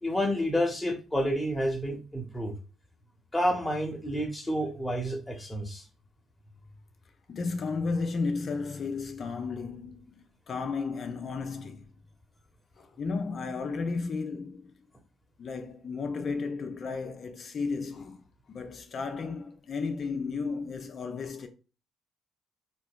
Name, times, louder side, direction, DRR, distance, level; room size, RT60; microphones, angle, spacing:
voice 1, 0.0-2.5 3.3-5.8, equal, 15° left, 1.0 m, -29 dB
voice 2, 7.3-11.9 12.8-14.7 15.4-18.2 18.5-21.5, left 4 dB, 50° left, 0.6 m, -33 dB
4.2 x 2.9 x 2.3 m
hypercardioid pair, 50°, 0 cm